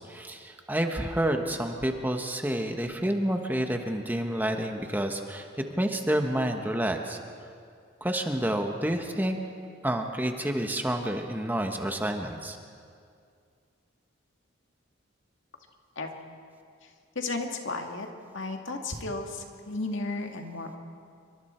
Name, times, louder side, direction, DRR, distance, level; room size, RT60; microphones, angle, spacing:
voice 1, 0.0-5.5 5.8-7.2 8.0-9.4 9.8-12.6, right 1 dB, 10° right, 4 dB, 1.2 m, -29 dB
voice 2, 17.2-18.1 18.3-20.8, left 3 dB, 75° left, 3 dB, 2.1 m, -33 dB
27.5 x 24.0 x 4.5 m, 2.3 s
head